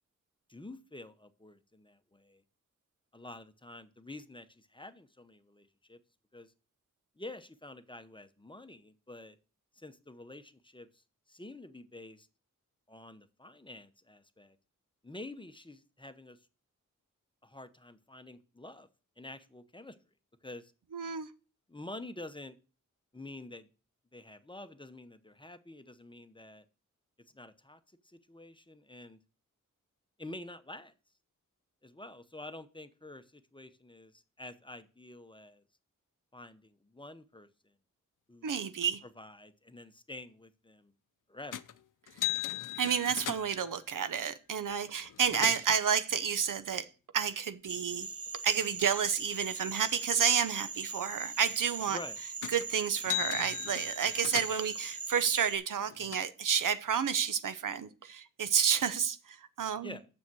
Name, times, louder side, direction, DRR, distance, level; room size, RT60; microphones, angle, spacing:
voice 1, 0.5-2.4 3.1-6.0 6.3-6.5 7.2-9.4 9.7-10.9 11.3-12.3 12.9-14.6 15.0-16.4 17.4-18.9 19.2-20.0 20.4-20.7 21.7-22.6 23.1-23.7 24.1-26.6 27.3-27.8 28.0-29.2 30.2-30.9 31.8-35.6 36.3-37.5 38.3-38.5 39.2-40.9 41.3-41.6 51.9-52.2 59.8-60.1, left 2 dB, 15° left, 0.9 m, -48 dB
voice 2, 20.9-21.3 38.4-39.0 42.8-46.9 47.1-48.1 48.4-52.0 52.5-59.9, right 7 dB, 75° right, 0.8 m, -30 dB
sound 1, 41.5-41.8 42.1-43.7 44.7-44.8 45.0-45.8 52.4-52.7 53.0-54.8 55.5-56.2, left 13 dB, 70° left, 0.6 m, -37 dB
sound 2, 47.7-55.6, right 4 dB, 45° right, 0.9 m, -41 dB
7.0 x 6.5 x 6.2 m
cardioid pair, 60°, 32 cm